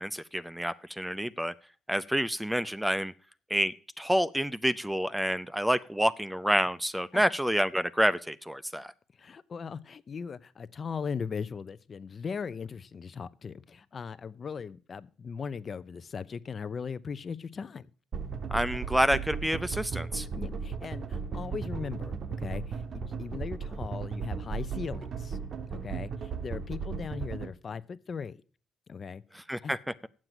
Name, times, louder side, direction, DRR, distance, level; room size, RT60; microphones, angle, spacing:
voice 1, 0.0-1.5 1.9-3.1 3.5-8.9 18.5-20.3 29.3-29.8, equal, 5° right, 16 dB, 0.6 m, -28 dB
voice 2, 9.2-17.9 20.2-25.4 25.7-28.4 28.9-29.7, left 6 dB, 45° left, 15 dB, 0.7 m, -39 dB
sound 1, 18.1-27.5, right 5 dB, 55° right, 1.0 m, -36 dB
8.9 x 7.5 x 8.0 m, 0.42 s
cardioid pair, 90°, 0 cm